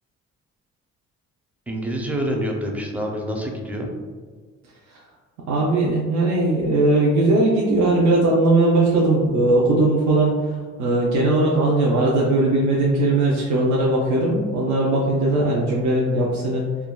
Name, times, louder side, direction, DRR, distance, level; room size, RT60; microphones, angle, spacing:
voice 1, 1.7-3.9, equal, 5° right, 0 dB, 0.4 m, -27 dB
voice 2, 5.5-16.6, right 2 dB, 70° right, -4 dB, 0.5 m, -19 dB
3.3 x 2.2 x 2.2 m, 1.5 s
cardioid pair, 90°, 30 cm